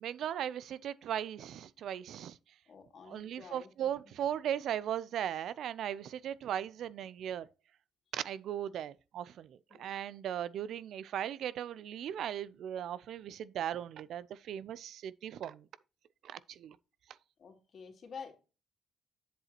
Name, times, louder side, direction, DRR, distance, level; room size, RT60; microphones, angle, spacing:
voice 1, 0.0-2.4 3.1-7.5 8.1-15.7 16.2-16.8, right 10 dB, 75° right, 0.4 m, -38 dB
voice 2, 2.7-3.9 9.7-9.9 17.4-18.3, left 6 dB, 55° left, 2.6 m, -49 dB
7.9 x 7.4 x 2.9 m
cardioid pair, 90°, 0 cm